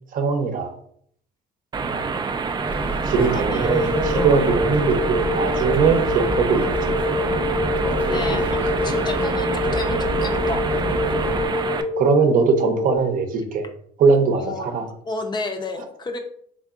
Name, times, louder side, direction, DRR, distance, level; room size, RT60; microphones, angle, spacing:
voice 1, 0.1-0.7 1.8-2.1 3.1-6.6 12.0-13.6 14.0-14.9, right 5 dB, 55° right, 6 dB, 0.7 m, -20 dB
sound 1, 1.7-11.8, right 4 dB, 25° right, 0.3 m, -27 dB
sound 2, 2.6-11.5, right 1 dB, 10° right, 0.8 m, -28 dB
voice 2, 3.2-3.9 8.0-11.2 14.3-16.2, left 3 dB, 25° left, 5 dB, 0.6 m, -33 dB
sound 3, 3.6-13.0, left 2 dB, 70° left, 1.2 m, -26 dB
3.6 x 3.5 x 2.4 m, 0.63 s
cardioid pair, 110°, 17 cm